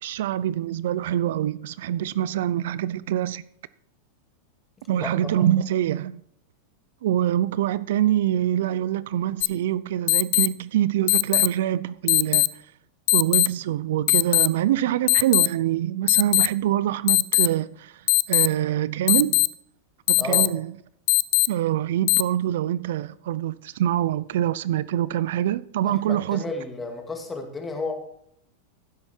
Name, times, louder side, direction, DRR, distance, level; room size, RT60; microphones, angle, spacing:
voice 1, 0.0-3.4 4.9-6.2 7.0-12.5 13.1-18.0 18.3-19.5 20.1-20.7 21.5-26.5, right 12 dB, 75° right, 0.5 m, -25 dB
voice 2, 5.0-5.5 20.2-20.5 25.9-27.9, left 3 dB, 15° left, 2.2 m, -33 dB
sound 1, 9.4-9.5 10.1-10.5 11.1-11.5 12.1-12.5 13.1-13.5 14.1-14.5 15.1-15.5 16.1-16.5 17.1-17.5 18.1-18.5 19.1-19.5 20.1-20.5 21.1-21.5 22.1-22.2, left 26 dB, 55° left, 0.5 m, -18 dB
15.5 x 8.1 x 4.5 m
supercardioid pair, 150°, 0 cm